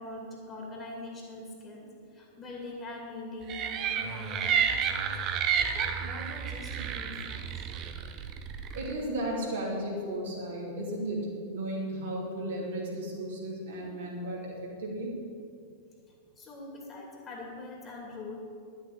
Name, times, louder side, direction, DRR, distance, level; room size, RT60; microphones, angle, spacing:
voice 1, 0.0-5.2 5.6-7.7 16.1-18.4, left 2 dB, 25° left, -1 dB, 2.6 m, -43 dB
sound 1, 3.5-8.9, right 7 dB, 35° right, 0.9 m, -31 dB
voice 2, 8.7-15.1, right 1 dB, 60° right, -4 dB, 2.9 m, -34 dB
11.5 x 7.2 x 8.1 m, 2.4 s
figure-of-eight pair, 90°, 0 cm